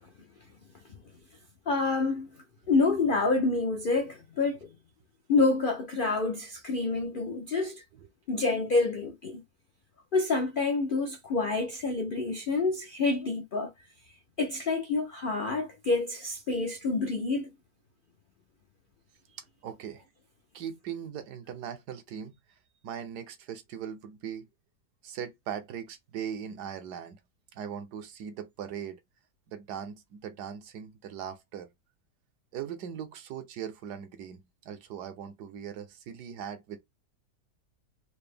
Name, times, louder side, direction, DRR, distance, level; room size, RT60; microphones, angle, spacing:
voice 1, 1.7-2.3 2.7-4.7 5.3-7.8 8.3-9.4 10.1-13.7 14.4-17.5, left 3 dB, 80° left, 0.4 m, -27 dB
voice 2, 19.6-20.0 20.5-22.3 22.8-24.5 25.0-27.2 27.5-29.0 29.5-31.7 32.5-34.4 34.6-36.8, right 8 dB, 80° right, 1.3 m, -39 dB
4.7 x 2.0 x 3.4 m
omnidirectional pair, 1.7 m